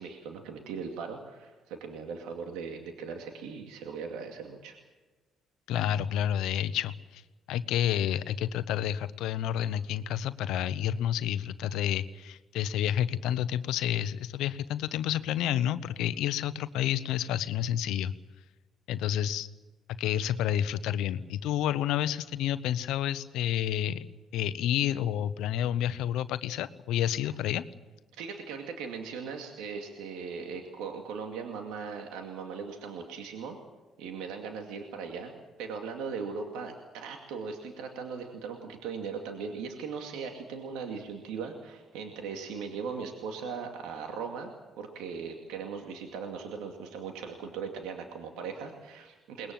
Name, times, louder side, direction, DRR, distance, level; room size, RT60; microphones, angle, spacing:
voice 1, 0.0-4.8 27.3-27.4 28.1-33.6 34.0-35.3 35.6-49.5, right 5 dB, 90° right, 3 dB, 2.3 m, -39 dB
voice 2, 5.7-7.2 7.5-18.1 18.9-19.5 19.9-24.1 24.3-27.6, left 11 dB, 80° left, 14 dB, 0.9 m, -29 dB
22.0 x 20.5 x 7.6 m, 1.2 s
supercardioid pair, 70°, 0 cm